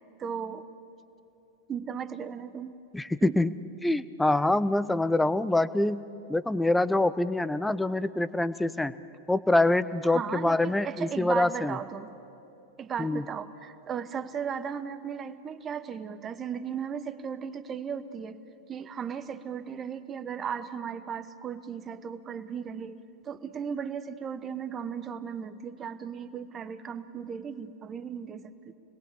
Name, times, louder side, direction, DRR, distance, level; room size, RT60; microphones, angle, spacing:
voice 1, 0.2-0.7 1.7-2.8 3.2-3.4 10.1-12.1 12.8-18.4 18.7-23.0 23.2-28.7, right 7 dB, 25° right, 12 dB, 1.1 m, -36 dB
voice 2, 2.9-3.5 3.8-6.0 6.3-8.9 9.3-11.8 13.0-13.2, left 2 dB, 5° left, 16 dB, 0.6 m, -25 dB
28.0 x 21.0 x 8.3 m, 2.9 s
figure-of-eight pair, 90°, 0 cm